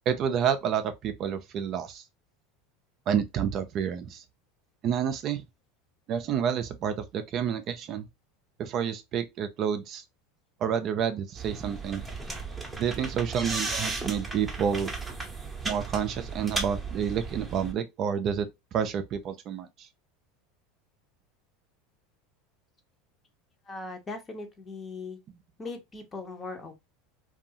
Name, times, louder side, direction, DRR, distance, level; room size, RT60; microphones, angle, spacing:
voice 1, 0.1-2.0 3.1-4.2 4.8-5.4 6.1-8.1 8.6-10.0 10.6-12.0 12.8-14.9 15.6-19.9, right 8 dB, 45° right, 0.4 m, -29 dB
sound 1, 11.4-17.7, right 3 dB, 10° right, 0.7 m, -35 dB
voice 2, 23.7-25.2 25.6-26.7, left 3 dB, 25° left, 0.7 m, -39 dB
2.6 x 2.3 x 2.7 m
supercardioid pair, 110°, 0 cm